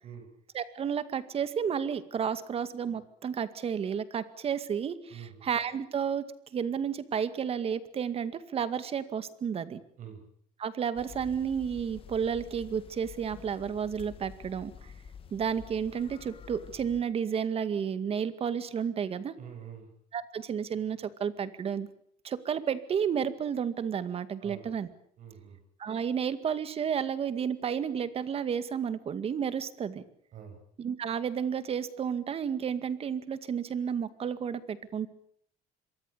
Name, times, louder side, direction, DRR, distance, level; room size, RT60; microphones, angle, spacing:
voice 1, 0.5-6.3 6.5-9.8 10.6-14.7 15.3-19.3 20.1-21.9 22.2-24.9 25.8-30.0 30.8-35.1, right 7 dB, 40° right, 13 dB, 2.1 m, -32 dB
voice 2, 5.1-5.5 10.0-10.2 19.4-19.9 24.4-24.7 25.2-25.6 30.3-30.6, right 8 dB, 55° right, 5 dB, 7.9 m, -45 dB
sound 1, 11.0-17.0, left 7 dB, 35° left, 1.8 m, -49 dB
26.5 x 23.5 x 6.9 m, 0.66 s
cardioid pair, 140°, 16 cm